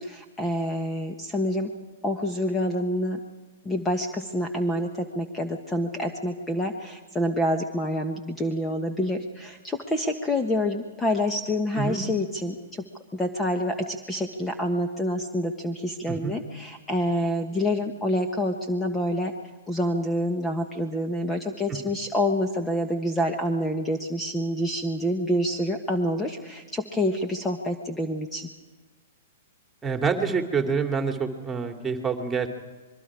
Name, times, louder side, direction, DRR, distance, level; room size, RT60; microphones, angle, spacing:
voice 1, 0.0-1.7 2.0-3.2 3.6-12.8 13.1-19.3 19.7-28.5, left 1 dB, 10° left, 5 dB, 1.4 m, -27 dB
voice 2, 29.8-32.5, right 5 dB, 15° right, 4 dB, 2.6 m, -27 dB
26.0 x 22.5 x 4.9 m, 1.3 s
hypercardioid pair, 115°, 0 cm